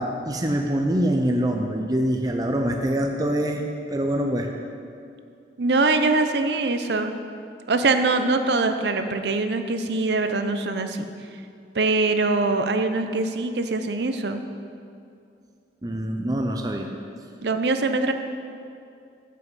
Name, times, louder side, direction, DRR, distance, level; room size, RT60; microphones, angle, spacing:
voice 1, 0.0-3.6 3.9-4.5 15.8-16.9, right 1 dB, 20° right, 3 dB, 0.5 m, -24 dB
voice 2, 5.6-7.1 7.7-11.1 11.7-14.4 17.4-18.1, right 3 dB, 70° right, 7 dB, 0.7 m, -23 dB
9.3 x 5.6 x 8.1 m, 2.5 s
head